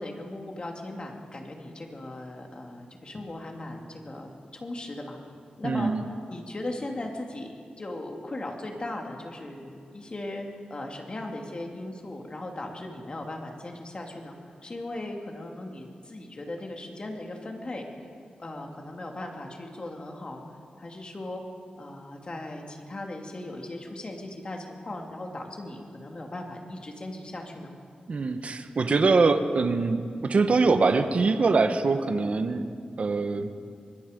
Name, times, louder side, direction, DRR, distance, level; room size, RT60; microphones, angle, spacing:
voice 1, 0.0-5.2 5.6-17.8 18.4-20.4 20.8-21.4 21.8-27.7, left 1 dB, 35° left, 1 dB, 2.6 m, -38 dB
voice 2, 5.6-6.0 28.1-32.7 33.0-33.5, right 4 dB, 50° right, 8 dB, 1.1 m, -23 dB
25.0 x 20.5 x 5.2 m, 2.4 s
wide cardioid pair, 125°, 3 cm